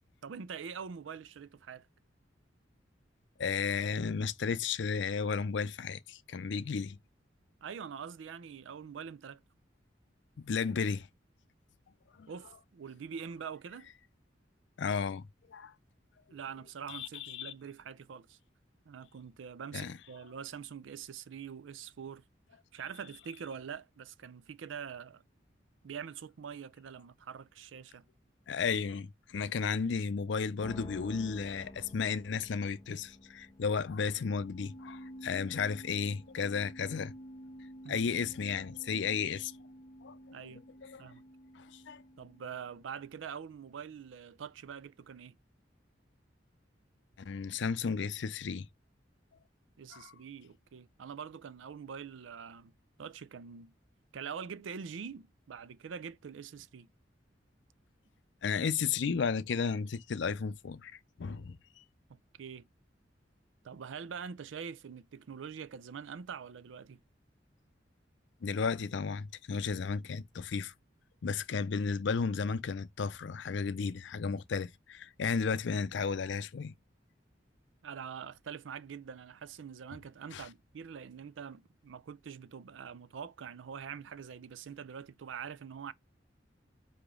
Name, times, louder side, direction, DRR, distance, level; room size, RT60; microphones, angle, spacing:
voice 1, 0.2-1.9 7.6-9.4 12.3-13.9 16.3-18.4 18.9-22.2 22.7-25.2 25.8-28.0 37.8-38.0 40.3-40.6 41.0-41.2 42.2-45.4 49.8-52.7 53.0-53.7 54.1-56.9 62.1-62.7 63.6-67.0 77.8-85.9, right 7 dB, 85° right, 0.4 m, -44 dB
voice 2, 3.4-7.0 10.4-11.1 12.2-12.3 14.8-15.7 16.9-17.5 19.7-20.0 28.5-37.1 37.9-39.5 40.0-41.1 41.6-42.0 47.3-48.7 49.9-50.1 58.4-60.9 61.2-61.6 68.4-70.7 71.2-76.7 80.3-80.5, left 5 dB, 70° left, 0.5 m, -34 dB
sound 1, 30.6-42.9, equal, 20° left, 0.5 m, -50 dB
5.0 x 2.7 x 3.6 m
head